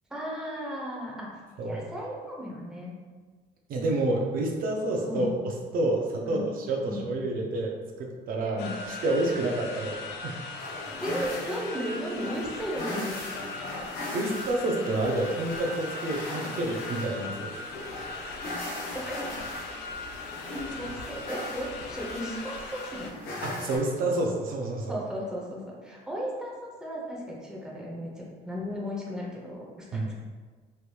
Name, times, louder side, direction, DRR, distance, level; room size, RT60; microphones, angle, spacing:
voice 1, 0.1-1.3 1.6-2.9 5.1-5.3 6.3-6.4 6.9-7.0 8.5-8.8 11.0-13.2 18.9-19.2 20.4-23.3 24.9-30.1, equal, 5° right, -4 dB, 0.7 m, -35 dB
voice 2, 3.7-5.3 5.7-10.4 14.1-17.5 23.4-25.0 29.9-30.1, right 2 dB, 60° right, 0 dB, 0.5 m, -29 dB
sound 1, 8.6-23.1, left 3 dB, 85° left, 0.4 m, -39 dB
sound 2, 10.6-23.8, left 2 dB, 65° left, 0.8 m, -39 dB
3.2 x 2.9 x 2.3 m, 1.5 s
cardioid pair, 110°, 17 cm